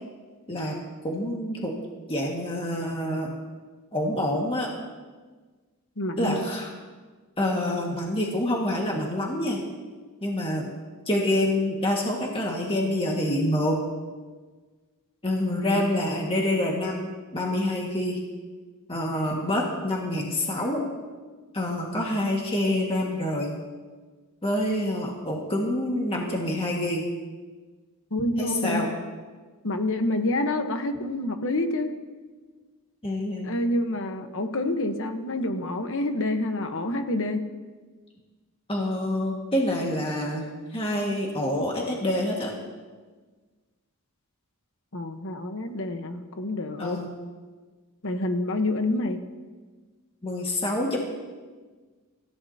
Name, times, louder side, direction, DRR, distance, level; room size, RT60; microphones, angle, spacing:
voice 1, 1.0-1.8 2.1-3.3 3.9-4.7 6.2-6.7 7.4-9.6 10.2-10.7 11.1-13.8 15.2-18.2 18.9-20.8 21.5-23.6 24.4-27.0 28.4-28.9 33.0-33.5 38.7-42.5 46.8-47.1 50.2-51.0, left 1 dB, 25° left, -2 dB, 1.8 m, -27 dB
voice 2, 6.0-6.5 15.6-16.3 28.1-28.8 29.6-31.9 33.4-37.4 44.9-47.0 48.0-49.2, left 1 dB, 60° left, 6 dB, 1.2 m, -28 dB
26.0 x 14.5 x 2.9 m, 1.4 s
head